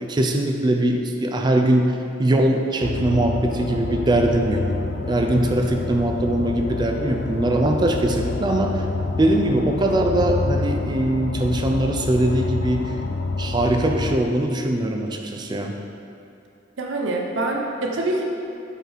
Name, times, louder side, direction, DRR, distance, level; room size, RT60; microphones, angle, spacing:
voice 1, 0.0-4.7 5.1-8.9 9.2-12.9 13.4-15.7, right 1 dB, 25° right, 3 dB, 0.3 m, -21 dB
sound 1, 2.8-14.2, left 3 dB, 60° left, 0.4 m, -28 dB
voice 2, 16.8-18.2, right 2 dB, 85° right, -1 dB, 0.6 m, -25 dB
5.4 x 3.9 x 4.5 m, 2.8 s
head